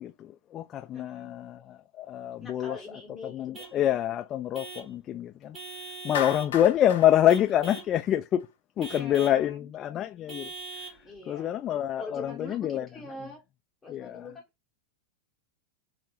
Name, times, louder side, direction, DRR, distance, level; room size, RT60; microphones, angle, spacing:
voice 1, 0.0-2.8 3.2-5.6 6.0-8.5 8.8-11.0 11.3-12.9 13.9-14.3, left 11 dB, 30° left, 0.3 m, -27 dB
voice 2, 0.9-1.3 2.4-3.7 8.8-9.7 11.0-11.5 12.0-13.4 13.8-14.4, left 3 dB, 15° left, 0.8 m, -43 dB
Vehicle horn car horn honking / Truck, 3.5-3.8 4.5-4.9 5.5-6.6 7.3-7.9 8.8-9.4 10.3-11.0, right 3 dB, 20° right, 1.4 m, -42 dB
Clapping, 6.1-8.4, left 8 dB, 60° left, 0.7 m, -36 dB
3.3 x 2.0 x 4.2 m
figure-of-eight pair, 90°, 0 cm